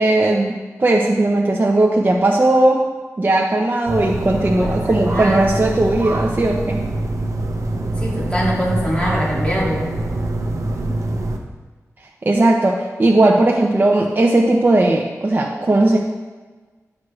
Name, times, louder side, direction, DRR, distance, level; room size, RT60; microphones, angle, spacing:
voice 1, 0.0-2.8 3.2-6.8 12.2-16.0, right 2 dB, 35° right, -1 dB, 0.7 m, -17 dB
sound 1, 3.9-11.4, right 2 dB, 65° right, 0.9 m, -24 dB
voice 2, 4.4-5.5 8.0-9.9, equal, 20° left, -5 dB, 2.3 m, -23 dB
11.0 x 6.2 x 3.2 m, 1.3 s
wide cardioid pair, 100°, 6 cm